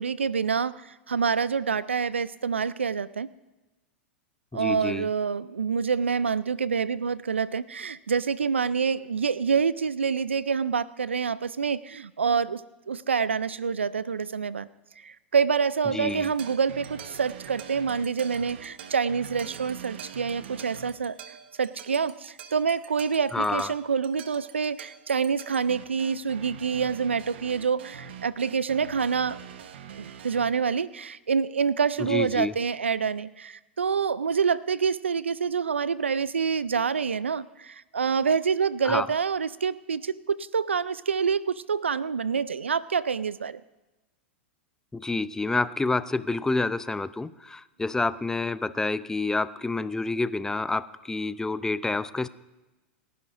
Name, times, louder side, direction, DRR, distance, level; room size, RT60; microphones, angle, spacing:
voice 1, 0.0-3.3 4.5-12.6 12.9-14.7 15.0-21.2 21.6-29.4 30.0-43.6, right 6 dB, 85° right, 19 dB, 0.4 m, -27 dB
voice 2, 4.5-5.1 15.9-16.3 23.3-23.7 32.0-32.5 38.8-39.1 44.9-52.3, left 3 dB, 10° left, 16 dB, 0.5 m, -28 dB
sound 1, 16.1-30.5, right 8 dB, 70° right, 1.1 m, -44 dB
29.5 x 11.0 x 2.6 m, 1.1 s
hypercardioid pair, 100°, 6 cm